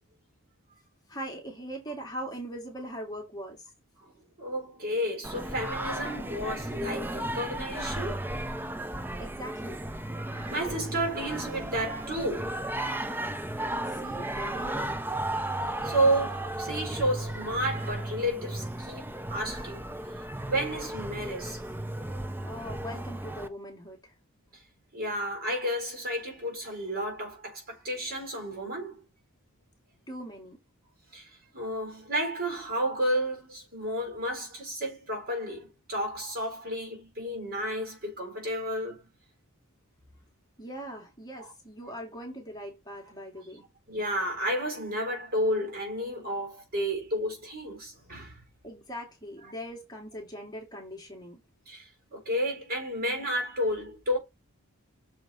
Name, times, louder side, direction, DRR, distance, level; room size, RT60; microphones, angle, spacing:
voice 1, 1.1-3.6 9.2-9.8 13.8-15.0 22.4-24.1 30.1-30.6 40.6-43.7 48.6-51.4, equal, 20° left, 2.3 m, -41 dB
voice 2, 4.4-8.2 10.0-12.6 15.8-19.8 20.1-21.6 24.9-29.0 31.1-39.1 41.4-41.5 43.9-48.4 51.7-54.2, equal, 45° right, 4.2 m, -31 dB
Singing, 5.2-23.5, right 1 dB, 10° right, 0.5 m, -35 dB
6.7 x 5.0 x 4.3 m
head